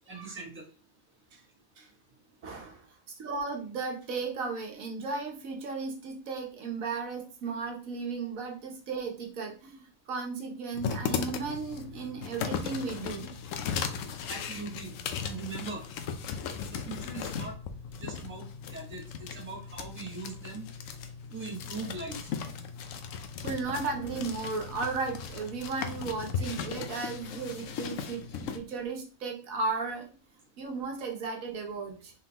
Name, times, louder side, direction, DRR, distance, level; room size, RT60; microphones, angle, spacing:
voice 1, 0.1-0.6 14.3-15.0 15.2-15.8 16.6-17.5 17.9-20.6 21.3-22.3, right 3 dB, 10° right, -1 dB, 0.9 m, -41 dB
voice 2, 2.4-2.8 3.1-13.3 23.4-30.1 30.6-32.1, right 4 dB, 75° right, 2 dB, 1.3 m, -35 dB
sound 1, 10.7-28.6, left 7 dB, 70° left, 0.9 m, -37 dB
3.9 x 3.7 x 2.9 m, 0.36 s
omnidirectional pair, 1.5 m